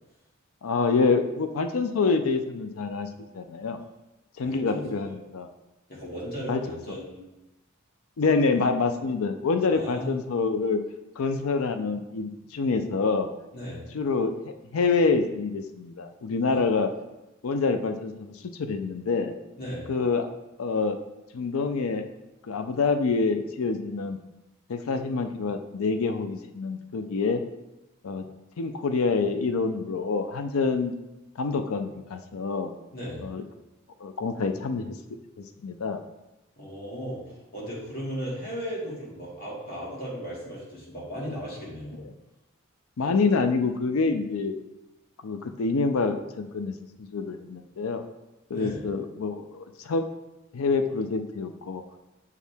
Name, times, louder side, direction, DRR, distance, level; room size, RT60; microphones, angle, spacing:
voice 1, 0.6-3.8 4.4-5.5 6.5-6.8 8.2-10.8 11.2-13.3 13.9-16.9 17.4-19.3 19.9-20.3 20.6-21.0 21.3-22.1 22.4-24.2 24.7-27.4 28.0-28.3 28.6-30.9 31.4-32.7 33.2-33.4 34.0-35.0 35.6-36.0 43.0-44.6 45.2-48.0 48.5-50.0 50.5-51.8, left 4 dB, 90° left, 8 dB, 0.5 m, -26 dB
voice 2, 4.4-5.2 5.9-7.3 9.7-10.1 13.5-13.8 16.5-16.6 19.6-19.8 32.9-33.3 36.6-42.0 48.5-48.8, equal, 45° left, -6 dB, 2.3 m, -36 dB
7.0 x 4.6 x 3.4 m, 0.99 s
head